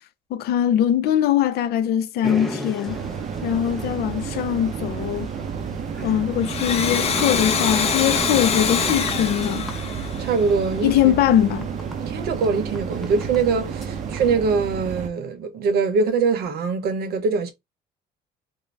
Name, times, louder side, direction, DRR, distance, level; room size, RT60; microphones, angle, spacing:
voice 1, 0.3-3.0 3.4-5.3 6.0-9.7 10.8-11.7, left 11 dB, 70° left, 0.5 m, -21 dB
sound 1, 2.2-14.3, equal, ahead, 0.6 m, -39 dB
sound 2, 2.9-15.1, right 7 dB, 45° right, 0.4 m, -31 dB
Domestic sounds home sounds, 6.3-10.8, left 5 dB, 40° left, 0.7 m, -24 dB
voice 2, 10.2-11.1 12.0-17.5, right 5 dB, 70° right, 0.8 m, -23 dB
2.5 x 2.0 x 3.2 m
cardioid pair, 110°, 17 cm